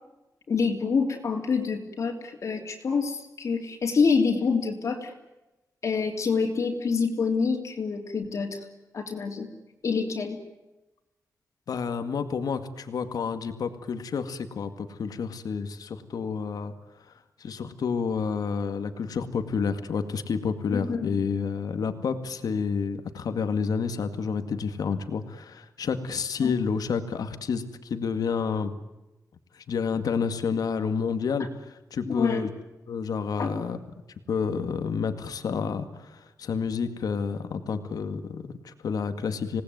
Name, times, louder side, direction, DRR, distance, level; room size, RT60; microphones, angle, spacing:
voice 1, 0.5-5.1 5.8-8.7 8.9-9.5 9.8-10.4 20.7-21.1 26.4-26.5 32.0-32.4 33.4-33.5, left 5 dB, 50° left, 2 dB, 3.1 m, -26 dB
voice 2, 11.7-16.7 17.4-28.7 29.5-32.5 32.9-33.8 34.3-39.6, left 6 dB, 80° left, 9 dB, 2.1 m, -29 dB
27.0 x 19.0 x 9.4 m, 1.0 s
wide cardioid pair, 180°, 6 cm